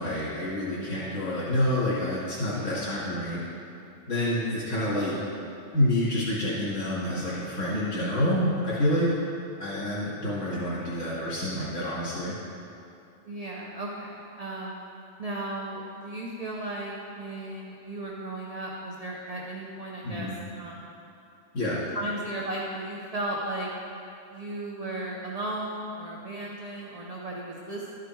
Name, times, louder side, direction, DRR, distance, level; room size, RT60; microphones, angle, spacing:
voice 1, 0.0-3.4 4.1-5.1 5.7-9.1 9.6-12.4 20.0-20.3 21.5-21.8, left 1 dB, 80° left, -10 dB, 2.3 m, -28 dB
voice 2, 13.2-14.8 15.2-20.3 20.6-20.9 21.9-23.7 24.3-27.9, right 1 dB, 35° right, -3 dB, 0.7 m, -35 dB
12.0 x 5.0 x 4.5 m, 2.7 s
omnidirectional pair, 1.3 m